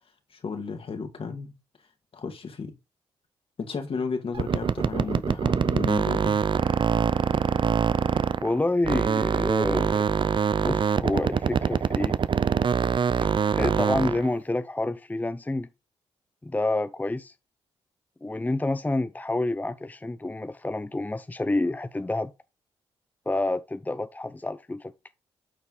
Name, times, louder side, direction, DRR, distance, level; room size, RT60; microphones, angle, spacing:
voice 1, 0.3-1.5 2.1-2.7 3.6-6.4, left 5 dB, 55° left, 2.1 m, -33 dB
sound 1, 4.3-8.6 8.8-14.3, right 6 dB, 45° right, 0.5 m, -24 dB
voice 2, 8.4-10.1 10.6-12.2 13.2-15.7 16.4-17.3 18.2-22.3 23.3-24.9, left 2 dB, 15° left, 0.6 m, -28 dB
8.7 x 4.5 x 4.1 m
supercardioid pair, 50°, 11 cm